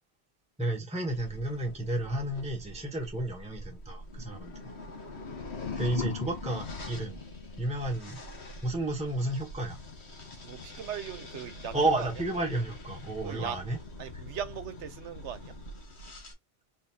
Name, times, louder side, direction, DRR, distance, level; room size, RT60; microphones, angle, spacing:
voice 1, 0.6-4.5 5.8-7.2 7.6-8.2 8.6-9.8 11.7-13.8, right 1 dB, 5° right, 1.1 m, -31 dB
sound 1, 1.1-16.3, left 1 dB, 70° left, 1.6 m, -45 dB
sound 2, 4.8-7.8, left 7 dB, 55° left, 0.6 m, -39 dB
voice 2, 5.6-6.0 10.4-12.1 13.2-13.6 14.0-15.5, right 8 dB, 85° right, 1.1 m, -39 dB
4.4 x 4.0 x 2.8 m
omnidirectional pair, 1.2 m